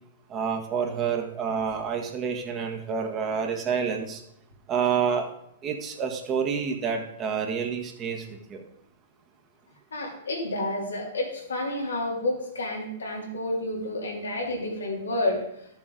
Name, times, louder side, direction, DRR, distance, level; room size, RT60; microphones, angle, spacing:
voice 1, 0.3-4.2 4.7-5.3 5.6-8.6, right 6 dB, 30° right, 3 dB, 1.6 m, -28 dB
voice 2, 9.9-15.4, left 1 dB, 90° left, -1 dB, 2.7 m, -30 dB
12.5 x 7.1 x 3.9 m, 0.75 s
hypercardioid pair, 120°, 0 cm